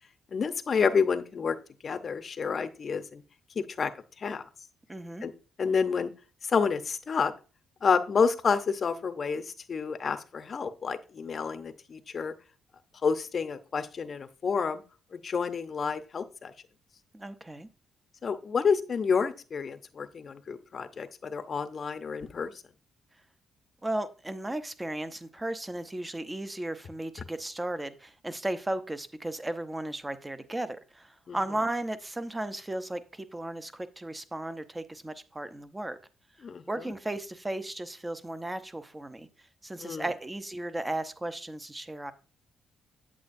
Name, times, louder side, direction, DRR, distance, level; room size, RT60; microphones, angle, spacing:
voice 1, 0.3-1.6 1.8-3.2 3.6-3.9 4.2-4.4 5.2-5.3 5.6-6.1 6.5-7.3 7.8-12.3 13.0-14.8 15.1-16.5 18.2-22.5 31.3-31.4 36.4-36.6 39.8-40.1, left 5 dB, 45° left, 10 dB, 0.7 m, -29 dB
voice 2, 4.9-5.3 17.1-17.7 23.8-36.0 36.7-39.3 39.6-42.1, right 1 dB, 15° right, 11 dB, 0.7 m, -35 dB
8.5 x 8.0 x 2.6 m, 0.35 s
cardioid pair, 90°, 0 cm